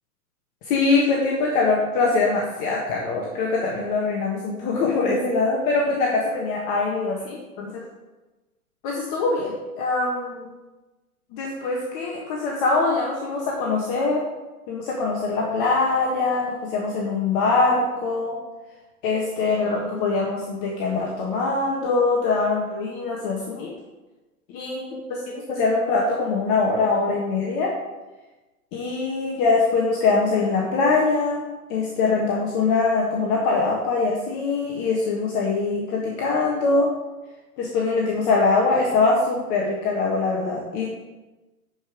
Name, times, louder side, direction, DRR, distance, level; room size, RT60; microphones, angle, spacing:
voice 1, 0.6-7.8 8.8-10.5 11.3-14.2 14.7-18.4 19.0-23.7 24.5-27.7 28.7-31.4 31.7-36.9 37.6-40.9, left 3 dB, 35° left, -2 dB, 1.5 m, -23 dB
11.5 x 5.2 x 5.0 m, 1.1 s
hypercardioid pair, 130°, 45 cm